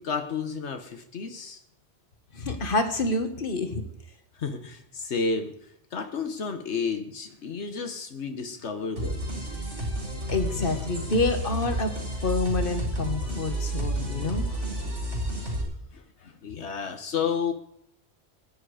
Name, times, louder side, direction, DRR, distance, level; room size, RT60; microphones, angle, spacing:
voice 1, 0.0-1.6 4.3-9.3 14.9-15.0 15.4-15.5 15.9-17.5, left 5 dB, 85° left, 6 dB, 1.4 m, -32 dB
voice 2, 2.3-3.8 10.3-11.9 12.2-14.7, left 2 dB, 50° left, 7 dB, 1.8 m, -28 dB
sound 1, 9.0-15.6, right 1 dB, 80° right, 5.1 m, -31 dB
20.5 x 10.0 x 4.9 m, 0.74 s
omnidirectional pair, 1.1 m